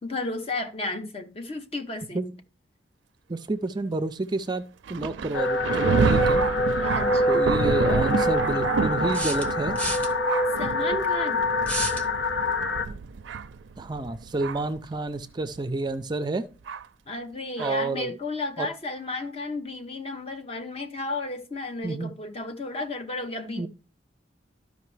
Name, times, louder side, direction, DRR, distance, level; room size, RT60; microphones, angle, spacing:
voice 1, 0.0-2.4 6.8-7.3 10.6-11.5 17.1-23.7, left 2 dB, 35° left, 0.8 m, -33 dB
voice 2, 3.3-6.5 7.3-9.8 13.8-16.5 17.6-18.2 18.6-18.7 21.8-22.1 23.6-23.7, right 2 dB, 25° right, 0.4 m, -29 dB
Thunder, 4.9-14.8 15.6-15.7 16.7-16.8 17.6-17.7, right 5 dB, 85° right, 0.4 m, -29 dB
sound 1, 5.3-12.9, left 2 dB, 75° left, 1.0 m, -25 dB
sound 2, 7.1-7.2 9.1-10.1 11.6-12.1, right 1 dB, 10° left, 1.1 m, -30 dB
12.5 x 5.3 x 3.2 m
head